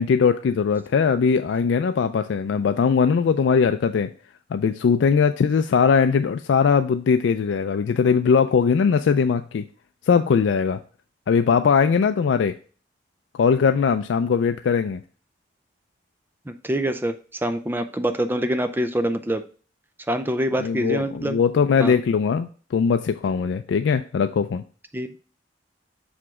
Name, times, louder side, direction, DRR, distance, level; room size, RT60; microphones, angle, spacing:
voice 1, 0.0-4.1 4.5-9.6 10.1-10.8 11.3-12.6 13.3-15.0 20.6-24.6, left 6 dB, 85° left, 9 dB, 0.3 m, -20 dB
voice 2, 16.5-17.1 17.4-19.4 20.1-21.4 21.8-22.0 24.9-25.1, right 1 dB, 10° right, 9 dB, 0.4 m, -25 dB
5.9 x 4.9 x 3.6 m, 0.39 s
head